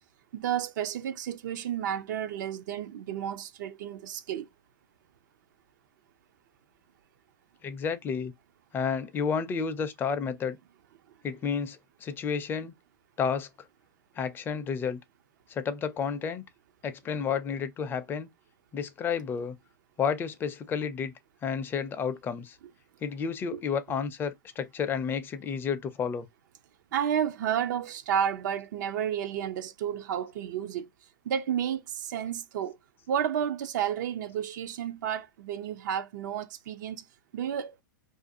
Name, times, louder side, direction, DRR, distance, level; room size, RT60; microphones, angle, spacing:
voice 1, 0.3-4.5 26.9-30.9 31.3-32.8 33.1-37.1 37.3-37.7, right 9 dB, 60° right, 0.4 m, -31 dB
voice 2, 7.6-8.3 8.7-10.6 11.2-12.7 13.2-13.5 14.2-15.0 15.5-16.4 16.8-18.3 18.7-19.6 20.0-21.1 21.4-22.6 23.0-26.3, left 6 dB, 20° left, 0.4 m, -31 dB
2.5 x 2.3 x 2.6 m
hypercardioid pair, 120°, 11 cm